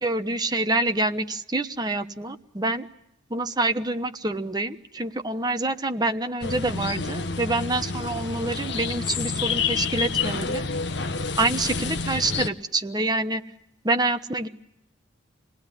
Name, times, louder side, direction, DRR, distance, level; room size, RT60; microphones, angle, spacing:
voice 1, 0.0-2.9 3.3-10.6 11.4-13.4 13.8-14.5, right 2 dB, 20° right, 8 dB, 1.1 m, -26 dB
sound 1, 6.4-12.5, left 5 dB, 60° left, 1.1 m, -28 dB
27.0 x 19.5 x 9.8 m, 0.82 s
head